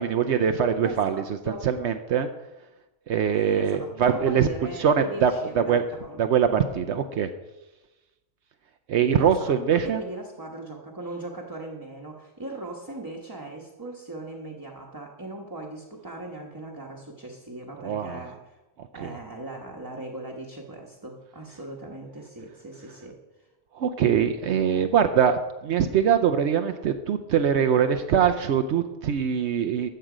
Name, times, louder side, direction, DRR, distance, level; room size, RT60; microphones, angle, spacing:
voice 1, 0.0-2.3 3.1-4.5 4.8-5.8 6.2-7.3 8.9-10.0 17.8-18.2 19.0-19.1 23.7-29.9, right 8 dB, 70° right, 8 dB, 0.9 m, -23 dB
voice 2, 0.8-1.7 3.5-6.2 6.9-7.1 9.2-18.6 18.9-23.5, right 2 dB, 20° right, 0 dB, 1.0 m, -39 dB
13.5 x 7.8 x 5.0 m, 1.1 s
omnidirectional pair, 1.2 m